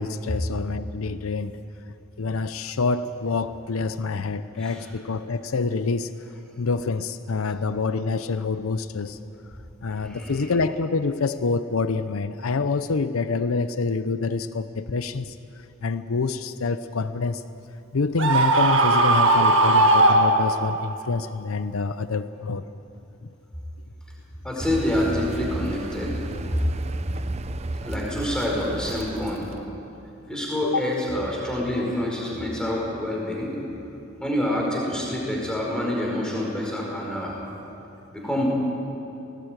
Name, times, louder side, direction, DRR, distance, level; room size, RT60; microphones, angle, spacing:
voice 1, 0.0-1.6 2.2-6.1 6.6-9.2 9.8-15.3 15.8-17.4 17.9-22.6 30.6-30.9, left 4 dB, 80° left, 12 dB, 0.6 m, -26 dB
voice 2, 10.0-10.5 24.4-26.1 27.8-29.5 30.3-33.5 34.2-37.4 38.1-38.4, left 1 dB, 5° left, -3 dB, 4.7 m, -27 dB
Screaming, 18.2-20.9, right 2 dB, 65° right, 1.7 m, -18 dB
Car, 24.6-29.7, right 2 dB, 30° right, 0.6 m, -33 dB
19.0 x 18.5 x 9.1 m, 2.9 s
head